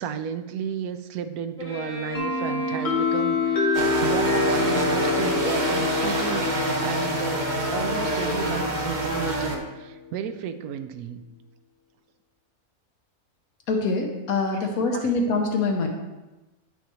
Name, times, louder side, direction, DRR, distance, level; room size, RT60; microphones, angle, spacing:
voice 1, 0.0-6.5 6.8-11.2 14.9-15.1, right 7 dB, 90° right, 10 dB, 1.1 m, -33 dB
Bowed string instrument, 1.6-6.0, left 1 dB, 10° left, 2.1 m, -36 dB
sound 1, 2.1-9.8, left 4 dB, 25° left, 1.1 m, -27 dB
sound 2, 3.7-9.6, right 1 dB, 35° right, 0.9 m, -26 dB
voice 2, 13.7-15.9, left 3 dB, 80° left, 2 dB, 1.4 m, -24 dB
9.8 x 5.8 x 3.0 m, 1.1 s
omnidirectional pair, 1.5 m